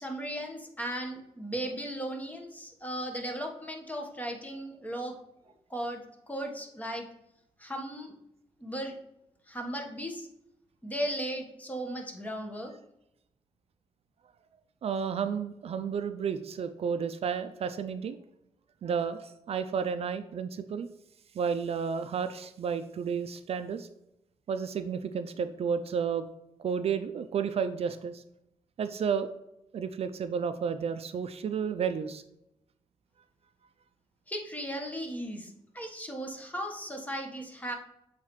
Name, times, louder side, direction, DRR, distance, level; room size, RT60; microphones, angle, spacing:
voice 1, 0.0-5.1 5.7-6.0 6.3-7.0 7.6-8.1 8.6-8.9 9.5-10.3 10.8-12.7 34.3-37.7, equal, 15° left, 2 dB, 1.3 m, -36 dB
voice 2, 14.8-18.2 18.8-20.9 21.3-23.9 24.5-26.2 26.6-28.2 28.8-29.3 29.7-32.2, right 6 dB, 60° right, 10 dB, 0.4 m, -32 dB
7.4 x 4.0 x 3.1 m, 0.84 s
cardioid pair, 80°, 12 cm